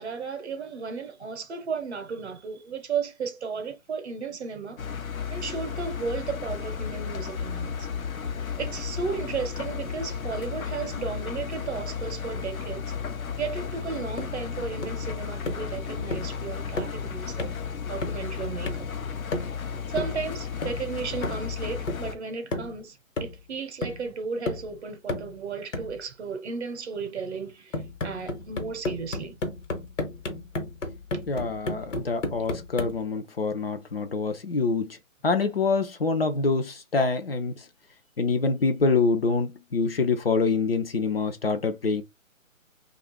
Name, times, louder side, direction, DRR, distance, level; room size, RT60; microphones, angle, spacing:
voice 1, 0.0-4.8 5.3-7.9 8.6-12.9 13.4-17.5 17.9-18.9 19.9-29.4, right 5 dB, 55° right, 0.7 m, -34 dB
Engine, 4.8-22.2, left 6 dB, 85° left, 0.7 m, -34 dB
sound 1, 14.2-14.4 14.8-15.1 15.5-15.7 16.1-16.4 16.8-17.0 17.4-17.6 18.0-18.3 18.7-18.9 19.3-19.6 20.0-20.2 20.6-20.9 21.2-21.5 21.9-22.1 22.5-22.8 23.2-23.5 23.8-24.1 24.5-24.7 25.1-25.4 25.7-26.0 27.7-33.0, left 2 dB, 65° left, 1.1 m, -33 dB
voice 2, 31.3-35.0 35.2-37.6 38.2-42.0, left 4 dB, 45° left, 0.5 m, -25 dB
2.7 x 2.4 x 3.6 m
hypercardioid pair, 155°, 41 cm